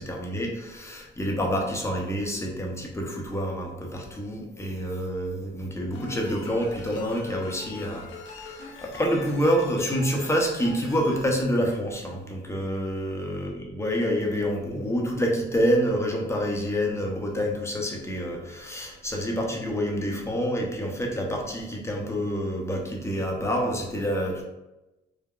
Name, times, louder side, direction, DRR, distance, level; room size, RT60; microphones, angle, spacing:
voice 1, 0.0-24.4, equal, 15° left, 0 dB, 0.7 m, -27 dB
sound 1, 5.9-11.3, left 3 dB, 75° left, 0.6 m, -43 dB
3.6 x 2.1 x 2.3 m, 0.99 s
cardioid pair, 90°, 20 cm